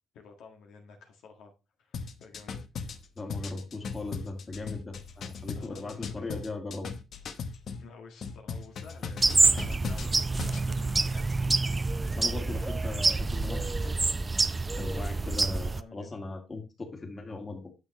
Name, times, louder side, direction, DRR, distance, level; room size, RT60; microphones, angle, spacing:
voice 1, 0.1-1.5 1.8-2.7 5.5-6.4 7.8-11.8 15.5-16.2, left 4 dB, 85° left, 1.7 m, -51 dB
sound 1, 1.9-7.8 8.2-10.7, left 5 dB, 60° left, 0.9 m, -38 dB
voice 2, 3.2-6.9 12.1-14.0 14.7-17.7, left 3 dB, 30° left, 2.2 m, -38 dB
sound 2, 9.2-15.8, right 3 dB, 25° right, 0.5 m, -27 dB
9.6 x 6.5 x 3.1 m
cardioid pair, 90°, 0 cm